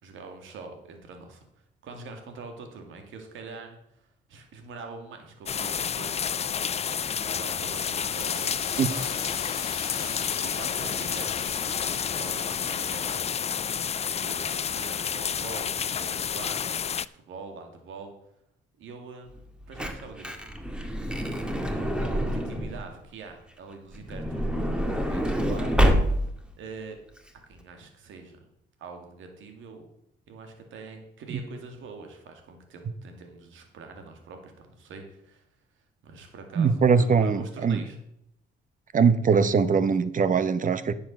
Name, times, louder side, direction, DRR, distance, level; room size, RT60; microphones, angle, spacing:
voice 1, 0.0-9.7 10.0-13.8 14.1-18.1 18.8-20.3 21.4-25.8 26.6-27.0 27.5-28.4 28.8-29.9 30.3-35.5 36.0-38.0, right 4 dB, 80° right, 5 dB, 2.3 m, -44 dB
sound 1, 5.5-17.1, left 7 dB, 30° left, 0.4 m, -30 dB
sound 2, 8.1-13.3, left 5 dB, 50° left, 1.7 m, -41 dB
Truck / Door, 19.4-22.9 23.9-26.5 27.2-27.3 27.4-27.6, equal, 5° right, 1.7 m, -27 dB
voice 2, 36.6-37.8 38.9-40.9, right 5 dB, 40° right, 14 dB, 0.9 m, -22 dB
10.0 x 7.2 x 6.4 m, 0.76 s
cardioid pair, 90°, 20 cm